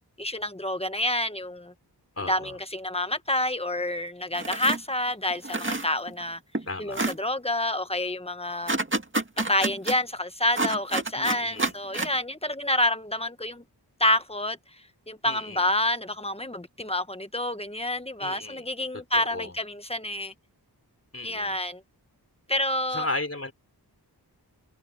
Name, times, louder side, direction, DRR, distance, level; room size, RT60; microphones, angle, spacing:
voice 1, 0.2-1.7 2.3-6.4 6.8-8.8 9.5-13.6 14.0-20.3 21.2-21.8 22.5-23.1, left 1 dB, 15° left, 1.5 m, -28 dB
voice 2, 2.2-2.6 6.7-7.0 11.2-11.7 15.2-15.7 18.2-18.7 19.1-19.5 21.1-21.6 22.9-23.5, left 2 dB, 35° left, 3.8 m, -35 dB
sound 1, 4.4-4.8 5.3-6.2 6.5-6.7 7.0-7.2 8.7-10.0 10.6-12.2, right 2 dB, 30° right, 2.1 m, -28 dB
wide cardioid pair, 60°, 41 cm